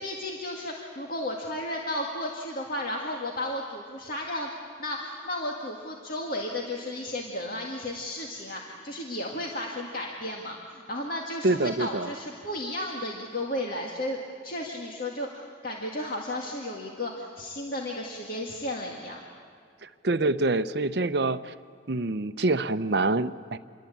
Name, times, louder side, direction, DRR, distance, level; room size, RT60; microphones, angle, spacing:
voice 1, 0.0-4.5 4.8-14.2 14.4-19.2, left 1 dB, 50° left, 0 dB, 2.1 m, -34 dB
voice 2, 11.4-12.1 19.8-21.5 21.9-23.6, right 2 dB, 60° right, 12 dB, 0.7 m, -26 dB
27.5 x 22.5 x 8.6 m, 2.3 s
head